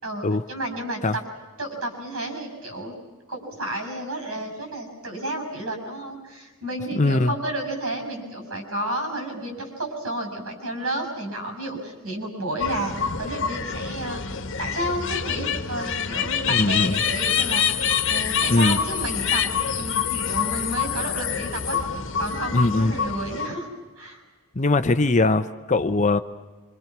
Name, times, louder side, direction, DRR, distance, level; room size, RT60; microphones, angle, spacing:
voice 1, 0.0-1.2 1.6-2.9 3.3-19.4 19.8-21.8 22.2-23.7 24.0-24.2, right 1 dB, 75° right, 4 dB, 6.6 m, -31 dB
voice 2, 6.9-7.3 16.5-17.0 18.5-18.8 22.5-22.9 24.5-26.2, left 2 dB, 35° left, 11 dB, 0.8 m, -21 dB
sound 1, 12.6-23.5, left 7 dB, 60° left, 1.5 m, -26 dB
26.0 x 26.0 x 6.0 m, 1.3 s
head